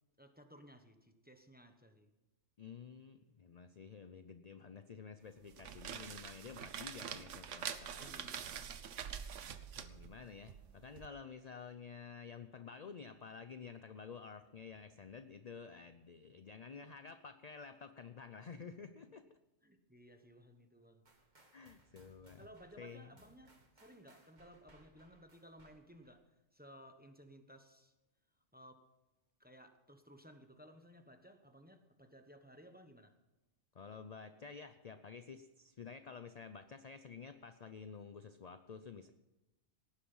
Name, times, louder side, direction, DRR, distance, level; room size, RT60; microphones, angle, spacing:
voice 1, 0.2-2.1 8.0-8.9 19.6-21.0 21.5-21.6 22.4-27.9 28.5-28.9 29.4-33.1, equal, 10° right, 7 dB, 1.0 m, -59 dB
voice 2, 2.6-8.5 9.6-19.2 21.5-22.4 22.8-23.1 33.7-39.1, left 5 dB, 45° left, 9 dB, 0.6 m, -51 dB
sound 1, 5.4-11.1, right 8 dB, 75° right, 1.2 m, -46 dB
sound 2, 21.1-26.2, right 2 dB, 35° right, 1.9 m, -67 dB
18.0 x 10.0 x 5.6 m, 1.0 s
omnidirectional pair, 1.3 m